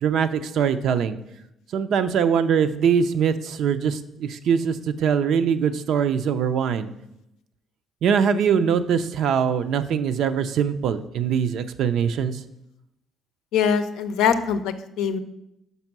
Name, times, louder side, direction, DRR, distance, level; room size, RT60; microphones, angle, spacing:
voice 1, 0.0-1.2 1.7-6.9 8.0-12.4, right 7 dB, 70° right, 10 dB, 0.5 m, -22 dB
voice 2, 13.5-15.2, left 7 dB, 85° left, 9 dB, 0.5 m, -23 dB
5.5 x 5.2 x 5.9 m, 0.83 s
cardioid pair, 95°, 0 cm